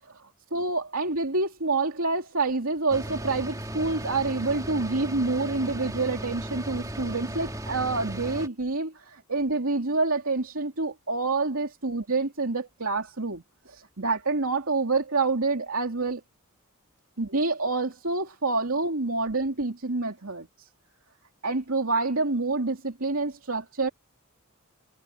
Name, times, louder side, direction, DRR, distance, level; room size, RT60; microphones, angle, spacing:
voice 1, 0.1-16.2 17.2-20.7 21.4-23.9, right 3 dB, 75° right, 2.7 m, -27 dB
sound 1, 2.9-8.5, right 1 dB, 15° right, 2.7 m, -36 dB
head